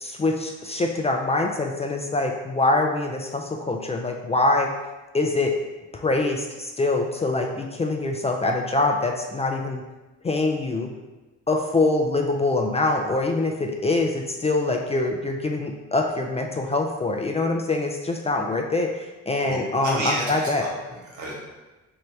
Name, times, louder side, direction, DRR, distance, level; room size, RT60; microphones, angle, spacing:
voice 1, 0.0-4.7 5.1-5.5 5.9-9.8 10.2-10.9 11.5-20.6, left 2 dB, 20° left, 2 dB, 0.3 m, -24 dB
voice 2, 19.4-21.3, right 1 dB, 70° right, -3 dB, 1.3 m, -31 dB
3.2 x 2.7 x 4.4 m, 1.1 s
cardioid pair, 90°, 30 cm